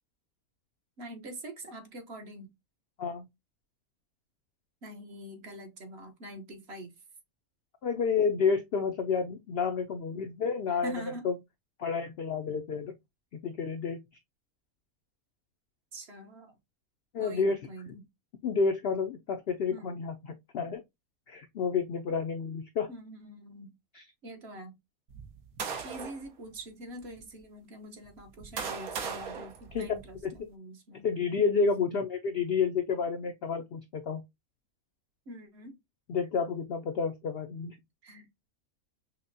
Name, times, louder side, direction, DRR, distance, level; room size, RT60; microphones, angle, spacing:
voice 1, 1.0-2.5 4.8-6.9 10.7-11.3 15.9-16.6 17.2-18.0 19.7-19.9 22.9-23.7 24.2-24.8 25.8-31.1 31.8-32.0 35.3-35.8 38.0-38.3, equal, 50° right, 1.0 m, -44 dB
voice 2, 7.8-10.9 11.2-11.3 11.8-12.9 13.4-14.0 17.1-17.6 18.4-20.8 21.3-22.9 23.9-24.0 29.7-29.9 30.2-30.3 31.0-34.2 36.1-37.8, left 5 dB, 70° left, 0.5 m, -30 dB
sound 1, 25.1-26.3 27.0-27.1 28.0-30.4, right 6 dB, 85° right, 1.3 m, -38 dB
5.9 x 2.1 x 2.6 m
omnidirectional pair, 1.5 m